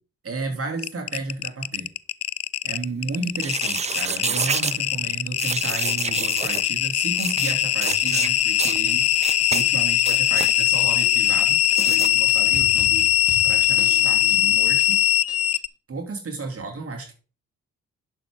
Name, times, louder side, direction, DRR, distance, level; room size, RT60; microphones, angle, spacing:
voice 1, 0.2-1.9 2.6-9.1 9.5-13.1 13.4-15.0 15.9-17.2, right 3 dB, 45° right, 2 dB, 2.9 m, -33 dB
sound 1, 0.8-15.7, left 12 dB, 50° left, 0.5 m, -21 dB
sound 2, 3.4-4.8 5.4-6.6 7.2-7.5 7.8-8.3 8.6-8.8 9.2-9.6 10.0-10.5 11.7-12.1, right 6 dB, 20° right, 0.4 m, -28 dB
sound 3, 10.8-15.6, left 1 dB, 5° right, 3.7 m, -40 dB
10.5 x 6.6 x 3.7 m, 0.37 s
supercardioid pair, 50°, 32 cm